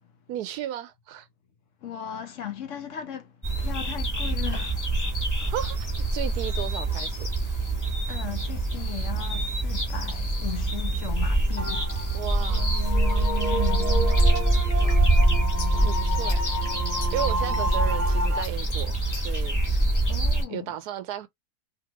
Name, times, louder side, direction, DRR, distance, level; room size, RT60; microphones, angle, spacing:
voice 1, 0.3-1.3 5.4-7.3 12.1-12.7 13.1-13.4 14.0-14.1 14.8-15.1 15.7-16.4 16.8-19.6 20.5-21.3, right 11 dB, 80° right, 1.1 m, -35 dB
voice 2, 1.8-3.3 3.6-4.8 7.4-7.6 8.1-11.9 13.5-14.0 17.6-17.7 19.7-20.7, left 9 dB, 60° left, 0.9 m, -37 dB
sound 1, 3.4-20.4, right 2 dB, 10° left, 1.3 m, -25 dB
sound 2, 11.6-18.4, equal, 35° right, 0.7 m, -31 dB
sound 3, 13.8-19.4, left 6 dB, 85° left, 1.4 m, -42 dB
2.9 x 2.7 x 2.8 m
omnidirectional pair, 1.7 m